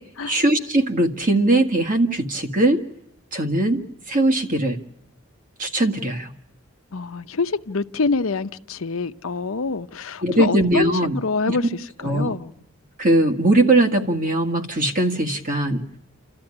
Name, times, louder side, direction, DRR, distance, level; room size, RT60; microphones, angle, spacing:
voice 1, 0.3-2.8 3.3-3.8 4.1-4.8 5.6-6.3 10.2-11.2 11.5-11.6 12.0-12.3 13.0-15.8, right 1 dB, 40° right, 1.8 m, -20 dB
voice 2, 6.9-11.7 12.0-12.5, left 4 dB, 90° left, 0.8 m, -26 dB
29.5 x 13.5 x 9.8 m
head